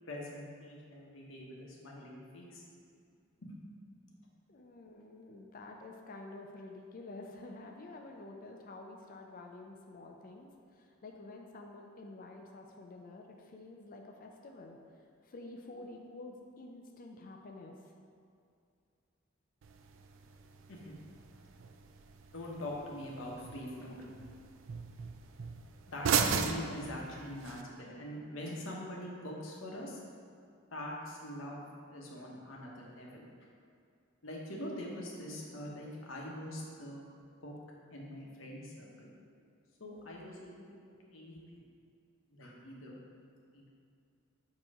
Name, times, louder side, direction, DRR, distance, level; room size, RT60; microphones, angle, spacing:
voice 1, 0.0-2.6 3.4-3.6 20.7-20.9 22.3-24.0 25.9-30.0 30.7-33.5 34.2-37.0 37.4-37.5 37.9-39.1 39.8-41.4 42.3-43.0 43.5-43.7, left 1 dB, 75° left, -2 dB, 1.1 m, -43 dB
voice 2, 4.5-14.8 15.2-17.7, left 2 dB, 45° left, 1 dB, 0.5 m, -49 dB
sound 1, 19.6-27.6, right 6 dB, 70° right, 0.4 m, -38 dB
7.6 x 3.1 x 4.8 m, 2.4 s
head